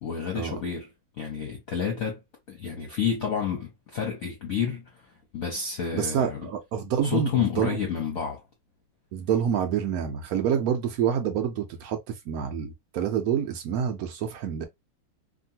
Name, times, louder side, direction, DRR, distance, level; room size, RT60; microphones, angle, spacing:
voice 1, 0.0-0.9 1.2-2.2 2.5-6.5 7.0-8.4, left 7 dB, 60° left, 1.0 m, -30 dB
voice 2, 5.9-7.3 7.6-7.8 9.1-14.6, right 8 dB, 80° right, 0.8 m, -27 dB
2.9 x 2.6 x 2.7 m
omnidirectional pair, 2.2 m